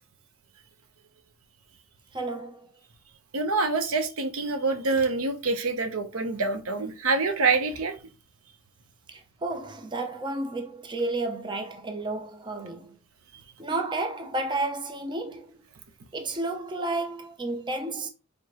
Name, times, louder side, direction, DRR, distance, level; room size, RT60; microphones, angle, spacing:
voice 1, 2.1-2.7 9.1-13.0 13.6-15.6 16.1-18.1, right 2 dB, 20° right, 0.6 m, -32 dB
voice 2, 3.3-7.9, right 3 dB, 85° right, 0.7 m, -26 dB
4.8 x 3.3 x 2.9 m
head